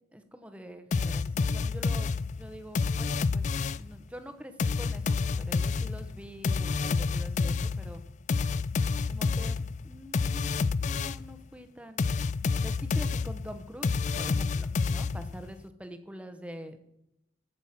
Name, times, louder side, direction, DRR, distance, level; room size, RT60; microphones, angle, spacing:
voice 1, 0.1-8.0 9.1-12.1 12.6-16.8, equal, 5° right, 8 dB, 1.0 m, -45 dB
sound 1, 0.9-4.0 4.6-11.3 12.0-15.5, left 4 dB, 40° left, 0.3 m, -29 dB
14.5 x 6.1 x 5.8 m, 0.84 s
head